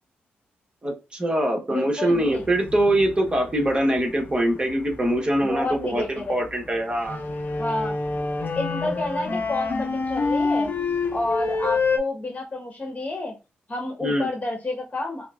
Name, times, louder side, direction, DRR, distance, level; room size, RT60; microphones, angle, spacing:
voice 1, 0.8-7.2 14.0-14.3, right 1 dB, 25° right, 2 dB, 1.2 m, -23 dB
voice 2, 1.7-2.4 5.4-6.4 7.6-7.9 8.5-10.7 11.1-13.3 13.7-15.3, left 2 dB, 30° left, 0 dB, 1.2 m, -29 dB
sound 1, 2.1-12.0, left 4 dB, 50° left, 0.8 m, -28 dB
4.7 x 2.1 x 2.4 m, 0.28 s
supercardioid pair, 50°, 4 cm